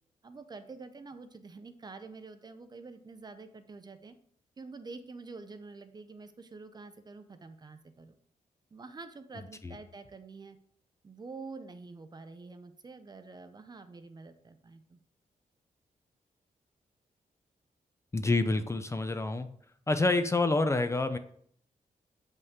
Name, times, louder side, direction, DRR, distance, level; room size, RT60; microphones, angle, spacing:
voice 1, 0.2-4.2 4.6-8.2 8.7-10.6 11.0-15.0, right 4 dB, 30° right, 9 dB, 0.6 m, -47 dB
voice 2, 18.1-19.5 19.9-21.2, left 2 dB, 20° left, 9 dB, 0.5 m, -27 dB
8.0 x 5.4 x 3.6 m, 0.62 s
wide cardioid pair, 150°, 14 cm